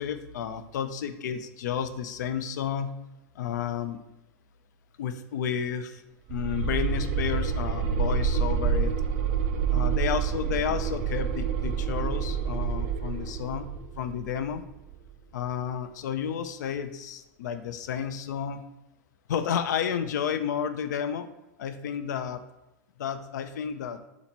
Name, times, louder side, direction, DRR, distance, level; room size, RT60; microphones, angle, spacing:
voice 1, 0.0-2.9 3.4-4.0 5.0-6.0 6.3-8.9 9.7-13.7 14.0-14.6 15.3-18.6 19.3-21.3 21.6-22.4 23.0-24.0, left 8 dB, 80° left, 10 dB, 0.4 m, -31 dB
sound 1, 6.3-15.2, right 7 dB, 55° right, 0.5 m, -28 dB
4.0 x 2.9 x 4.2 m, 0.97 s
supercardioid pair, 135°, 9 cm